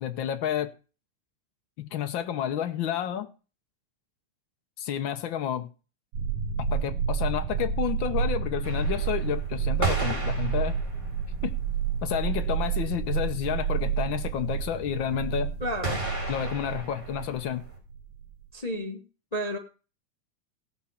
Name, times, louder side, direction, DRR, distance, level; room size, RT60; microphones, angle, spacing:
voice 1, 0.0-0.7 1.8-3.3 4.8-5.7 6.7-10.7 11.4-11.5 12.0-15.5 16.3-17.6, left 10 dB, 85° left, 7 dB, 1.0 m, -30 dB
sound 1, 6.1-18.4, right 7 dB, 65° right, 2.5 m, -30 dB
sound 2, 8.6-11.4 12.0-12.1 12.4-12.5 12.7-12.8 13.0-13.5 15.8-17.8, right 2 dB, 10° right, 4.1 m, -34 dB
voice 2, 15.6-16.1 18.5-19.0 19.3-19.6, equal, 65° left, 3 dB, 0.4 m, -31 dB
17.5 x 6.1 x 5.7 m, 0.35 s
omnidirectional pair, 3.4 m